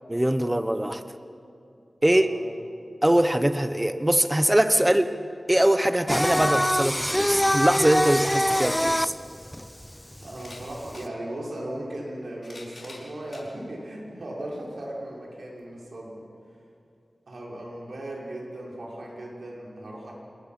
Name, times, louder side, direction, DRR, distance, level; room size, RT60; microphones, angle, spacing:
voice 1, 0.1-1.0 2.0-2.3 3.0-5.2 5.5-9.1, right 1 dB, 15° right, 9 dB, 1.0 m, -22 dB
voice 2, 2.0-2.5 10.2-16.3 17.3-20.2, right 1 dB, 75° right, -3 dB, 5.9 m, -37 dB
Singing, 6.1-11.0, equal, 10° left, 0.5 m, -24 dB
sound 1, 10.3-11.1 12.1-13.5 14.2-14.3 15.6-15.7, left 2 dB, 45° left, 5.3 m, -46 dB
27.5 x 21.0 x 6.0 m, 2.6 s
wide cardioid pair, 80°, 0 cm